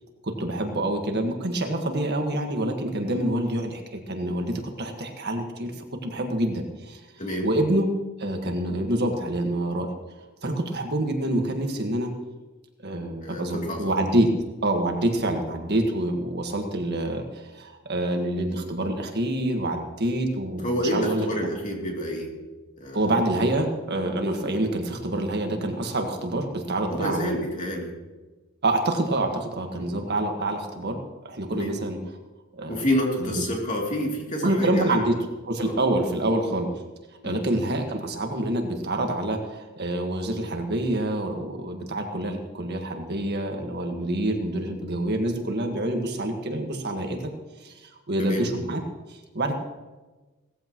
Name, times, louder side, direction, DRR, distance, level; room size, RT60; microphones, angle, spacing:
voice 1, 0.2-5.7 6.0-7.0 7.4-7.9 8.2-9.9 10.4-12.1 12.8-14.3 14.6-20.7 20.9-21.3 22.9-27.4 28.6-32.0 32.5-32.8 33.2-33.4 34.4-35.2 35.4-36.7 37.2-47.2 47.6-48.8 49.1-49.5, right 1 dB, 50° right, 3 dB, 1.6 m, -26 dB
voice 2, 7.2-7.5 13.2-14.0 20.6-22.3 22.8-23.0 26.9-27.9 29.8-29.9 31.5-31.8 32.7-35.0 35.6-35.8 37.2-37.4 48.2-48.5, equal, 35° left, -1 dB, 2.9 m, -28 dB
17.5 x 14.5 x 3.1 m, 1.2 s
head